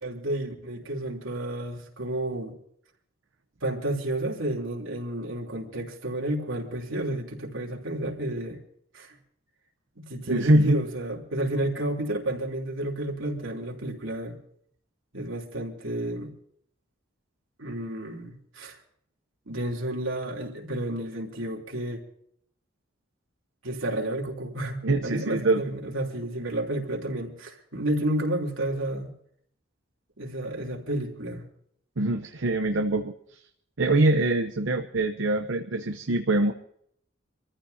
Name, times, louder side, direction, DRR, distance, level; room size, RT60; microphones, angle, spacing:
voice 1, 0.0-2.5 3.6-8.6 8.9-9.2 9.9-14.4 15.1-16.3 17.6-18.8 19.5-22.0 23.6-29.1 30.2-31.4, right 1 dB, 85° right, 0 dB, 3.3 m, -31 dB
voice 2, 10.3-10.8 24.8-25.6 32.0-33.1 33.8-36.5, right 2 dB, 70° right, 5 dB, 0.8 m, -24 dB
26.5 x 14.5 x 2.8 m, 0.67 s
head